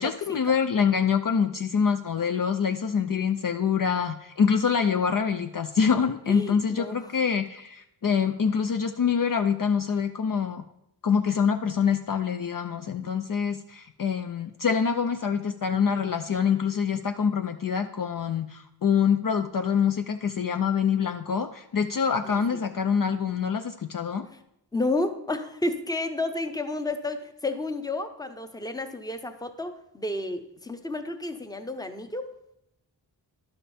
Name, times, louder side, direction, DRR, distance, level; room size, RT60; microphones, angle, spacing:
voice 1, 0.0-10.6 11.0-24.3, left 6 dB, 50° left, 7 dB, 0.5 m, -25 dB
voice 2, 6.3-7.1 22.2-22.6 24.3-24.4 24.7-32.3, left 2 dB, 10° left, 8 dB, 0.8 m, -31 dB
11.5 x 5.3 x 4.3 m, 0.81 s
cardioid pair, 55°, 44 cm